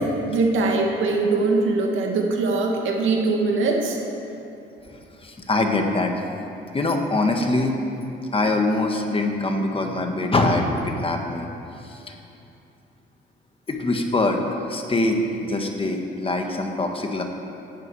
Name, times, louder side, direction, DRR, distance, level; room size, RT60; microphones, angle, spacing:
voice 1, 0.0-4.0, right 3 dB, 80° right, 0 dB, 2.4 m, -22 dB
voice 2, 4.9-6.1 6.7-7.8 8.3-11.5 11.8-12.1 13.7-17.2, left 2 dB, 25° left, 3 dB, 1.7 m, -23 dB
17.0 x 12.0 x 4.9 m, 2.8 s
cardioid pair, 90°, 20 cm